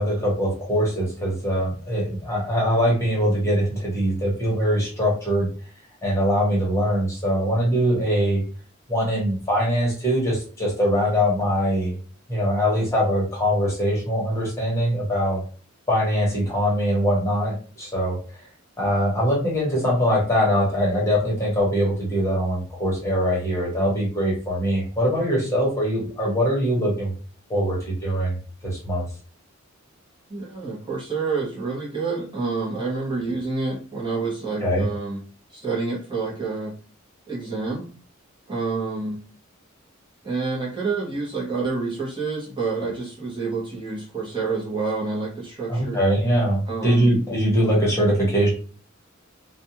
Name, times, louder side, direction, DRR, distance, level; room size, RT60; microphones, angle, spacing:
voice 1, 0.0-5.5 6.0-8.4 8.9-12.0 12.3-15.4 15.9-18.2 18.8-27.1 27.5-28.4 28.6-29.0 34.6-34.9 45.7-48.5, equal, 15° left, -4 dB, 1.0 m, -22 dB
voice 2, 30.3-35.2 35.5-36.7 37.3-37.8 38.5-39.2 40.2-46.0 46.7-47.1, right 4 dB, 25° right, -5 dB, 0.8 m, -28 dB
2.5 x 2.2 x 2.8 m, 0.39 s
head